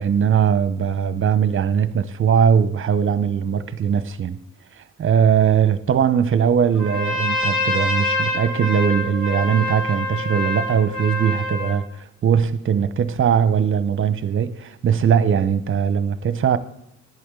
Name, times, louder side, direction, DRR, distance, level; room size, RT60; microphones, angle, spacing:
voice 1, 0.0-4.4 4.7-16.6, right 7 dB, 45° right, 0.8 m, -20 dB
Trumpet, 6.7-11.8, left 2 dB, 55° left, 3.4 m, -25 dB
11.0 x 8.4 x 3.8 m
cardioid pair, 90°, 30 cm